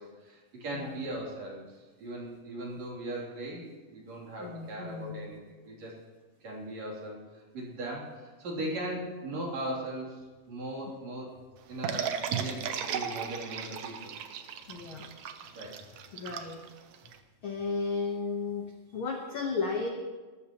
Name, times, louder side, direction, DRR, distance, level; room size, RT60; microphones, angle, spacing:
voice 1, 0.0-6.0 6.4-11.4 11.7-14.1 15.5-15.8, right 1 dB, 50° right, -3 dB, 4.2 m, -39 dB
voice 2, 4.4-5.2 8.6-8.9 14.7-15.1 16.1-16.6 17.4-19.9, left 4 dB, 75° left, 2 dB, 1.1 m, -34 dB
sound 1, 11.8-17.2, right 8 dB, 70° right, 1.7 m, -35 dB
23.0 x 13.5 x 3.0 m, 1.3 s
omnidirectional pair, 4.2 m